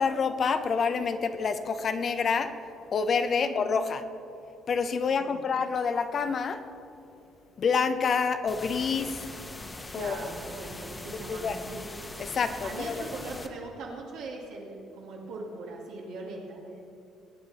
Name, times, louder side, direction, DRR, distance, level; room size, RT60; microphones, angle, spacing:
voice 1, 0.0-2.5 2.9-4.0 4.7-6.6 7.6-9.3 9.9-10.2 11.3-11.6 12.2-12.9, left 5 dB, 45° left, 9 dB, 0.7 m, -27 dB
voice 2, 3.4-3.8 5.2-5.4 9.9-11.9 12.6-16.8, right 3 dB, 85° right, -3 dB, 2.2 m, -40 dB
sound 1, 8.5-13.5, left 2 dB, 20° left, 1.2 m, -41 dB
19.5 x 8.8 x 4.2 m, 2.7 s
cardioid pair, 85°, 0 cm